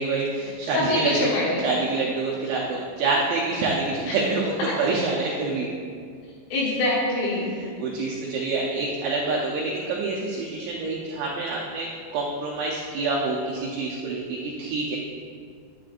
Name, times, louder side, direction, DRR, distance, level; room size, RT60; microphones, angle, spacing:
voice 1, 0.0-1.3 1.6-5.7 7.4-15.0, right 3 dB, 80° right, -3 dB, 2.7 m, -27 dB
voice 2, 0.7-1.7 4.0-4.1 6.5-7.5, left 1 dB, 75° left, -5 dB, 3.3 m, -24 dB
9.7 x 9.0 x 2.5 m, 2.1 s
omnidirectional pair, 5.7 m